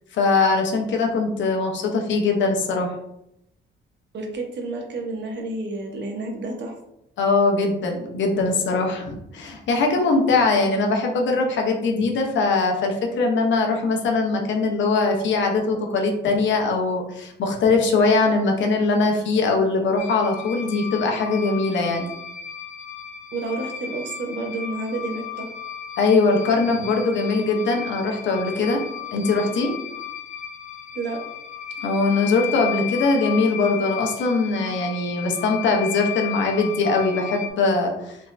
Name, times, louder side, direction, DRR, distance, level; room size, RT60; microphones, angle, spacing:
voice 1, 0.1-2.9 7.2-22.1 26.0-28.8 29.1-29.7 31.8-38.2, left 3 dB, 70° left, 2 dB, 0.8 m, -21 dB
voice 2, 4.1-6.7 23.3-25.5 30.9-31.2, right 2 dB, 60° right, 2 dB, 0.9 m, -30 dB
sound 1, 20.0-37.5, left 9 dB, 40° left, 0.5 m, -34 dB
3.5 x 3.1 x 2.5 m, 0.81 s
cardioid pair, 90°, 20 cm